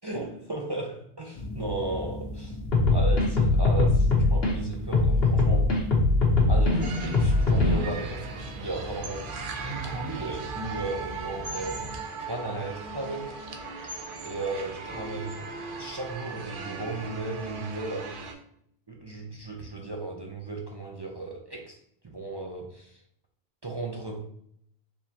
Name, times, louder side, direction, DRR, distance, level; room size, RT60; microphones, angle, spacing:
voice 1, 0.0-2.6 2.9-5.7 6.5-9.3 9.6-11.9 12.2-13.4 14.2-15.4 15.8-18.4 18.9-21.8 22.0-23.0 23.6-24.2, right 2 dB, 30° right, 0 dB, 0.5 m, -35 dB
sound 1, 1.3-12.0, left 1 dB, 40° left, 0.7 m, -40 dB
sound 2, 2.7-4.5 4.9-7.9, left 2 dB, 70° left, 1.2 m, -21 dB
sound 3, 6.8-18.3, right 4 dB, 60° right, 0.8 m, -38 dB
4.4 x 3.4 x 2.8 m, 0.70 s
omnidirectional pair, 1.0 m